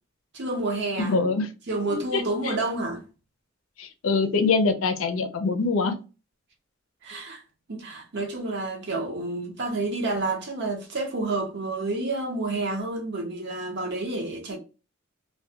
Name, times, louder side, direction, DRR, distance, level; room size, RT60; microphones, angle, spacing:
voice 1, 0.3-1.1 1.7-3.0 7.0-7.4 7.7-14.6, right 2 dB, 60° right, 0.6 m, -29 dB
voice 2, 1.0-1.5 2.1-2.5 3.8-5.9, left 4 dB, 85° left, 0.5 m, -24 dB
2.2 x 2.2 x 2.7 m
head